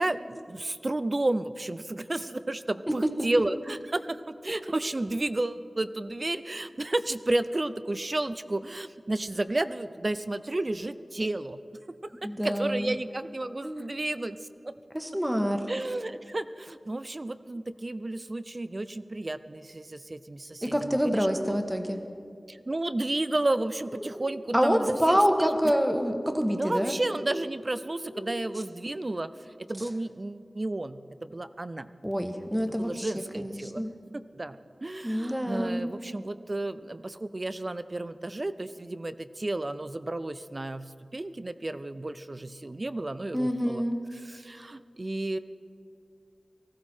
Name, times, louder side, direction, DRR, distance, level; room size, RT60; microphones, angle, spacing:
voice 1, 0.0-11.6 12.0-12.1 12.4-14.7 15.7-21.6 22.5-25.7 26.5-29.3 29.6-31.9 32.7-33.8 34.1-43.8 44.1-45.4, right 2 dB, 40° right, 13 dB, 0.5 m, -32 dB
voice 2, 12.2-12.9 13.6-13.9 14.9-15.6 20.6-22.0 24.5-27.0 32.0-33.9 35.0-35.9 43.3-44.0, equal, 10° right, 5 dB, 1.3 m, -27 dB
sound 1, 23.9-24.4 25.1-25.6 25.9-26.4 27.0-27.5 28.0-28.5, equal, 20° left, 1.3 m, -39 dB
19.0 x 15.0 x 4.4 m, 2.4 s
wide cardioid pair, 65°, 0 cm